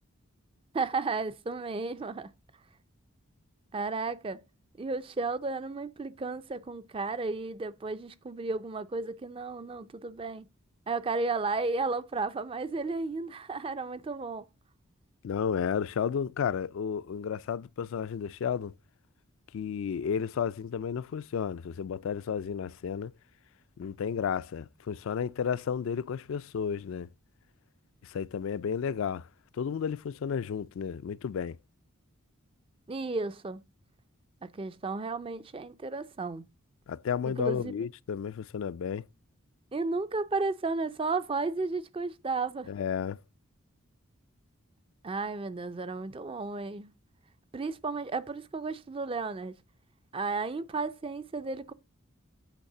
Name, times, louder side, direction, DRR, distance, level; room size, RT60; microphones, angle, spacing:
voice 1, 0.7-2.3 3.7-4.4 4.8-10.5 10.9-14.5 32.9-33.6 34.4-36.4 37.3-37.7 39.7-42.7 45.0-46.9 47.5-49.5 50.1-51.7, right 3 dB, 25° right, 0.4 m, -33 dB
voice 2, 15.2-18.7 19.5-23.1 23.8-27.1 28.0-29.3 29.5-31.6 36.9-39.1 42.7-43.2, left 7 dB, 65° left, 0.3 m, -32 dB
8.3 x 3.2 x 6.5 m
head